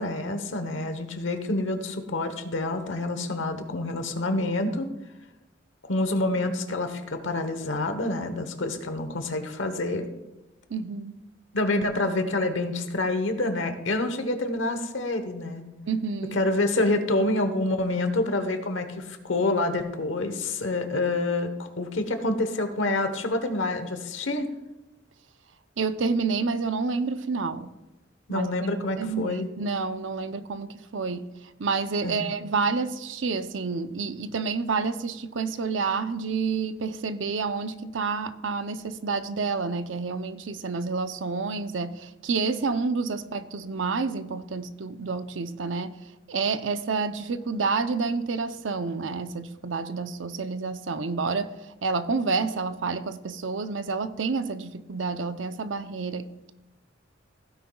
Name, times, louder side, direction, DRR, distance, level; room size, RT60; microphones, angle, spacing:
voice 1, 0.0-4.9 5.8-10.1 11.5-15.7 16.3-24.5 28.3-29.5 32.0-32.3, left 2 dB, 80° left, 8 dB, 1.1 m, -27 dB
voice 2, 10.7-11.2 15.9-16.4 25.8-27.7 28.3-28.5 29.0-31.3 31.6-45.9 46.3-51.5 51.8-56.5, right 4 dB, 80° right, 11 dB, 0.6 m, -29 dB
15.5 x 9.4 x 2.3 m, 1.0 s
head